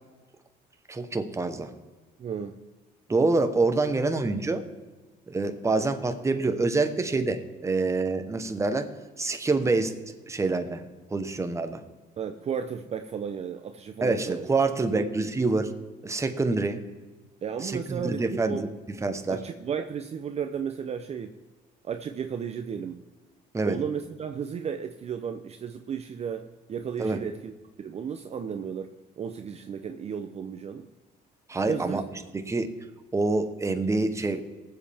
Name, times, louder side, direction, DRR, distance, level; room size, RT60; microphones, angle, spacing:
voice 1, 0.9-1.7 3.1-4.6 5.3-8.9 9.2-9.9 10.3-10.8 11.1-11.8 14.0-15.7 16.0-16.8 17.6-18.7 19.0-19.4 23.5-23.8 27.0-27.2 31.5-32.0 32.3-32.7 33.1-34.4, right 3 dB, 15° right, 7 dB, 1.1 m, -26 dB
voice 2, 2.2-2.6 12.2-14.4 14.9-15.4 17.4-18.6 19.3-21.4 21.8-23.0 23.7-27.5 27.8-30.9 31.7-32.0, right 7 dB, 40° right, 7 dB, 0.7 m, -34 dB
19.5 x 7.7 x 3.5 m, 1.3 s
cardioid pair, 110°, 17 cm